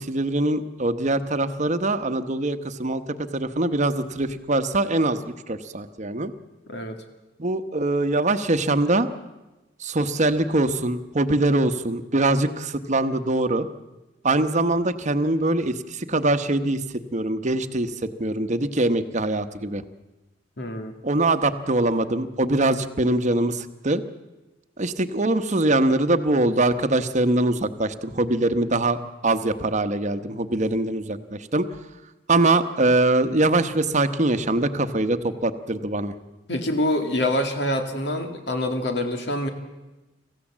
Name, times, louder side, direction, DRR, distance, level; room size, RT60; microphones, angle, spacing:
voice 1, 0.0-6.3 7.4-9.1 9.8-13.7 14.2-16.8 17.1-19.8 21.0-24.0 24.8-29.0 29.2-31.7 32.3-36.1, right 2 dB, 40° right, 10 dB, 1.0 m, -23 dB
voice 2, 20.6-21.0 36.5-39.5, left 1 dB, 70° left, 5 dB, 2.2 m, -25 dB
26.0 x 15.5 x 7.4 m, 1.1 s
head